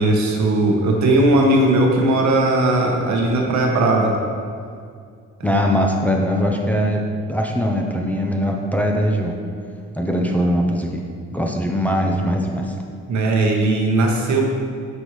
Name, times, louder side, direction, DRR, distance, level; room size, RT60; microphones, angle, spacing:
voice 1, 0.0-4.2 5.4-5.6 13.1-14.4, right 2 dB, 70° right, 0 dB, 1.2 m, -18 dB
voice 2, 5.4-7.0 7.3-9.3 10.0-11.0 11.3-12.8, equal, 5° left, 0 dB, 0.6 m, -21 dB
8.1 x 5.3 x 3.1 m, 2.2 s
cardioid pair, 90°, 30 cm